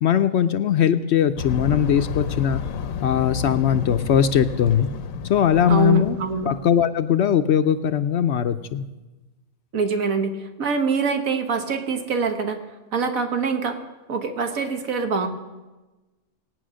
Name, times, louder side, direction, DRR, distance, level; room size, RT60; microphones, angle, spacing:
voice 1, 0.0-2.6 3.0-4.9 5.3-6.2 6.5-8.9, left 9 dB, 60° left, 10 dB, 0.8 m, -20 dB
sound 1, 1.4-6.7, left 7 dB, 80° left, 1.1 m, -31 dB
voice 2, 5.7-6.5 9.7-12.6 12.9-13.8 14.1-15.3, right 5 dB, 75° right, 6 dB, 1.7 m, -24 dB
19.0 x 9.2 x 6.3 m, 1.2 s
omnidirectional pair, 1.5 m